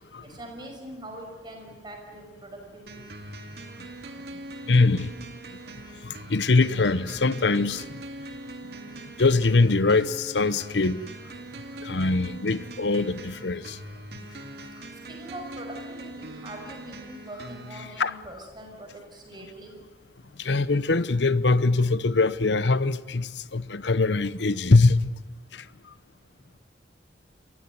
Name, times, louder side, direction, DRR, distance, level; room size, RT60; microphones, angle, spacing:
voice 1, 0.2-2.9 15.1-19.7, right 1 dB, 25° right, 5.9 m, -42 dB
sound 1, 2.9-17.9, right 1 dB, 65° right, 2.6 m, -42 dB
voice 2, 4.7-5.1 6.0-7.8 9.2-11.0 11.8-13.8 18.0-18.2 20.4-25.1 25.5-25.6, left 3 dB, 80° left, 0.9 m, -22 dB
28.0 x 15.5 x 9.4 m
head